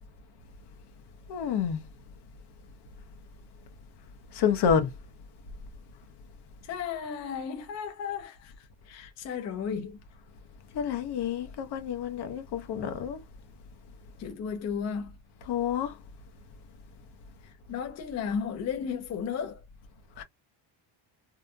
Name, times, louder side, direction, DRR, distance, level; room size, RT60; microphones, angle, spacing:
voice 1, 1.3-1.8 4.3-4.9 10.7-13.2 15.5-16.0 20.2-20.3, left 7 dB, 60° left, 0.8 m, -28 dB
voice 2, 6.6-10.0 14.2-15.1 17.4-19.6, left 7 dB, 40° left, 0.4 m, -34 dB
2.8 x 2.4 x 2.2 m
cardioid pair, 175°, 45 cm